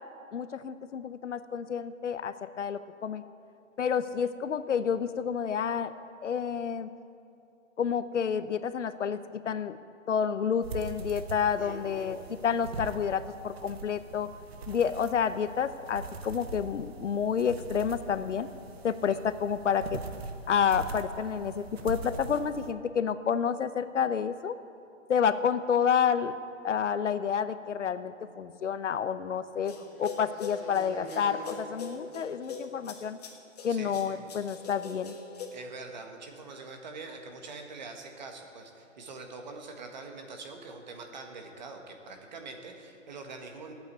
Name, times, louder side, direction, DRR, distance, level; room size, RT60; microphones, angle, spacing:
voice 1, 0.3-3.2 3.8-5.9 6.2-6.9 7.8-9.8 10.1-14.3 14.7-18.5 18.8-20.0 20.5-24.5 25.1-26.4 26.6-29.7 30.0-33.2 33.6-35.1, left 7 dB, 65° left, 12 dB, 0.8 m, -29 dB
sound 1, 10.6-22.7, right 3 dB, 50° right, 1.1 m, -42 dB
voice 2, 11.5-12.3 33.7-34.3 35.5-43.7, right 3 dB, 35° right, 3 dB, 1.6 m, -44 dB
sound 2, 28.2-32.9, right 1 dB, 5° right, 3.4 m, -48 dB
sound 3, 29.6-35.5, left 5 dB, 30° left, 1.5 m, -43 dB
14.5 x 8.9 x 9.4 m, 2.6 s
hypercardioid pair, 170°, 38 cm